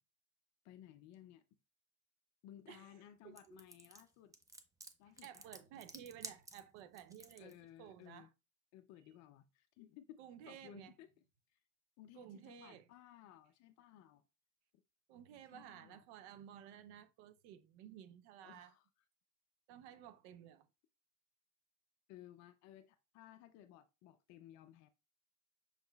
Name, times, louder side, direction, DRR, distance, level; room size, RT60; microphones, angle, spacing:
voice 1, 0.6-1.4 2.4-4.3 5.0-5.4 7.4-8.3 8.7-11.1 11.5-11.6 12.0-14.2 15.5-16.0 18.4-18.9 22.1-24.9, left 12 dB, 45° left, 0.5 m, -58 dB
voice 2, 3.2-3.7 5.2-8.3 10.2-10.9 12.2-12.9 15.1-18.7 19.7-20.7, right 10 dB, 60° right, 0.7 m, -55 dB
sound 1, 3.4-7.5, right 3 dB, 10° right, 0.5 m, -52 dB
6.1 x 3.6 x 2.3 m
hypercardioid pair, 100°, 39 cm